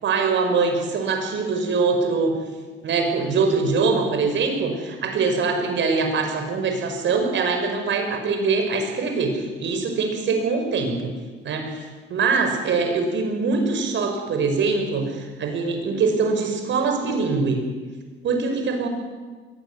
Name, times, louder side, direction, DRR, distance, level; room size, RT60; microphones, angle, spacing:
voice 1, 0.0-2.3 2.8-11.1 11.4-17.6 18.2-18.9, right 4 dB, 70° right, 4 dB, 5.9 m, -23 dB
22.5 x 17.5 x 9.7 m, 1.4 s
cardioid pair, 90°, 20 cm